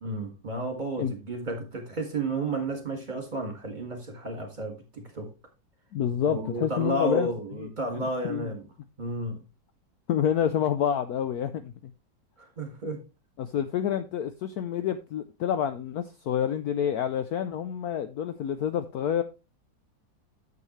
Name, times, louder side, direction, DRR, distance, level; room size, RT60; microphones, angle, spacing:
voice 1, 0.0-5.3 6.2-8.6 9.0-9.4 12.4-13.0, right 2 dB, 25° right, 4 dB, 2.0 m, -32 dB
voice 2, 5.9-7.3 7.6-7.7 7.9-8.5 10.1-11.7 13.4-19.2, left 9 dB, 70° left, 10 dB, 0.9 m, -28 dB
9.6 x 7.3 x 3.1 m, 0.27 s
omnidirectional pair, 2.0 m